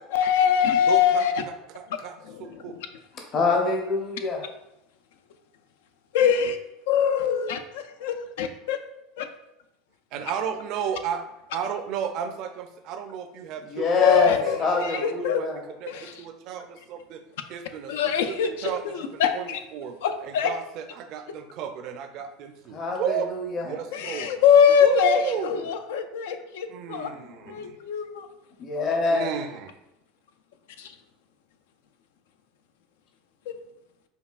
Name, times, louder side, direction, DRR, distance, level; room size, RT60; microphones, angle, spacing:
voice 1, 0.1-1.4 2.3-2.7 6.1-6.6 6.9-8.8 9.2-9.3 14.0-15.4 15.9-16.1 17.9-19.6 20.0-20.5 23.9-27.1 27.5-28.3 30.8-30.9, left 8 dB, 85° left, 8 dB, 0.3 m, -23 dB
voice 2, 0.9-2.8 10.1-11.2 11.5-15.5 15.8-17.2 17.5-17.9 18.3-20.0 20.2-23.3 23.6-24.4 24.8-25.7 26.7-27.8 29.1-29.7, right 8 dB, 55° right, 7 dB, 0.4 m, -33 dB
voice 3, 3.3-4.4 13.6-15.6 22.7-23.7 28.6-29.3, left 4 dB, 40° left, 0 dB, 0.7 m, -25 dB
5.2 x 2.3 x 2.4 m, 0.86 s
supercardioid pair, 125°, 0 cm